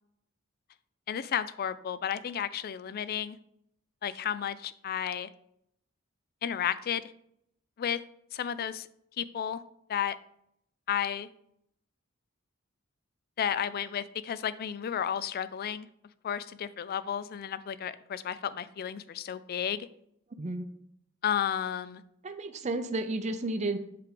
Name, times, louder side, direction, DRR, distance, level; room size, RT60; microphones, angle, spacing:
voice 1, 1.1-3.4 4.0-5.3 6.4-7.0 7.8-8.0 8.3-8.9 9.2-9.6 9.9-10.2 10.9-11.3 13.4-15.9 16.2-19.9 21.2-22.0, left 9 dB, 45° left, 15 dB, 0.3 m, -32 dB
voice 2, 22.2-23.8, right 2 dB, 35° right, 8 dB, 0.6 m, -32 dB
7.8 x 3.4 x 5.0 m, 0.73 s
head